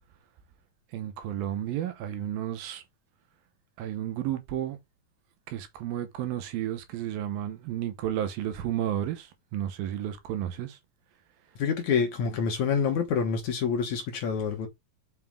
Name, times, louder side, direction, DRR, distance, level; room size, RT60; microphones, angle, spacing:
voice 1, 0.9-2.8 3.8-4.8 5.5-9.3 9.5-10.8, right 11 dB, 75° right, 2.7 m, -32 dB
voice 2, 11.6-14.7, left 6 dB, 65° left, 2.2 m, -27 dB
5.9 x 5.8 x 3.7 m
omnidirectional pair, 4.4 m